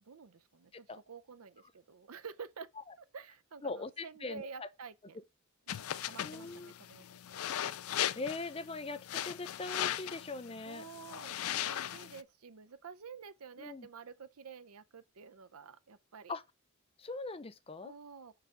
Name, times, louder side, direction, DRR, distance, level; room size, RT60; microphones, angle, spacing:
voice 1, 0.0-5.2 5.7-7.0 7.3-7.4 10.7-16.4 17.8-18.4, right 5 dB, 80° right, 0.7 m, -50 dB
voice 2, 3.6-4.7 6.2-6.7 8.2-10.9 13.6-13.9 16.3-16.4 17.0-17.9, left 3 dB, 25° left, 0.5 m, -41 dB
sound 1, 5.7-12.2, left 11 dB, 80° left, 0.4 m, -38 dB
5.8 x 4.7 x 4.9 m
head